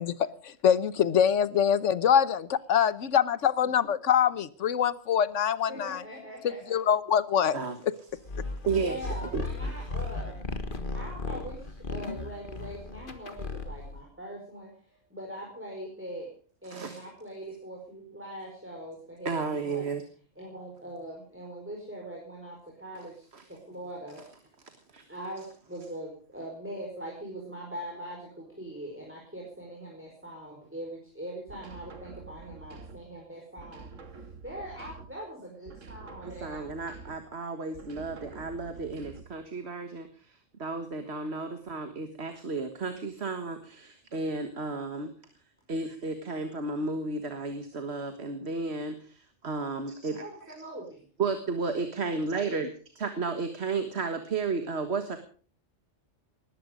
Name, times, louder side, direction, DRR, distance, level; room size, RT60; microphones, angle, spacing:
voice 1, 0.0-6.0 6.4-7.5, left 8 dB, 75° left, 17 dB, 1.3 m, -24 dB
voice 2, 5.7-6.8 8.7-10.5 10.9-16.3 16.6-19.9 20.3-24.2 25.1-33.9 34.1-36.7 50.2-51.0, right 1 dB, 10° right, -2 dB, 4.8 m, -42 dB
sound 1, 8.3-14.0, left 3 dB, 45° left, 1.8 m, -36 dB
voice 3, 8.6-9.0 9.3-9.8 16.6-17.0 19.2-20.0 23.3-23.4 24.9-25.0 36.4-45.1 45.7-50.2 51.2-52.7 53.0-55.2, right 4 dB, 60° right, 7 dB, 1.8 m, -33 dB
sound 2, 31.5-33.2 33.6-35.3 35.7-37.4 37.7-39.5, right 4 dB, 90° right, 1.9 m, -47 dB
20.0 x 14.0 x 5.1 m, 0.43 s
omnidirectional pair, 1.3 m